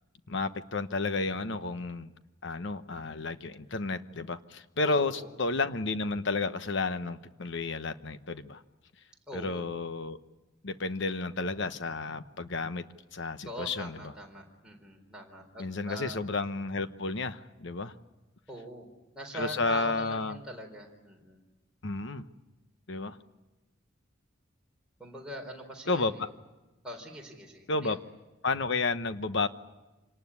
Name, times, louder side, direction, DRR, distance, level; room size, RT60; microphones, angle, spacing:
voice 1, 0.3-2.1 2.4-8.6 9.3-10.2 10.6-12.8 13.1-13.9 15.6-17.9 19.3-20.4 21.8-22.2 22.9-23.2 25.9-26.3 27.7-28.0 28.4-29.5, left 3 dB, 60° left, 11 dB, 1.0 m, -31 dB
voice 2, 4.8-5.3 9.3-9.7 13.4-16.4 18.5-18.9 19.1-21.4 25.0-26.2 26.8-28.0, equal, 5° right, -1 dB, 4.1 m, -42 dB
26.5 x 19.0 x 9.7 m, 1.1 s
head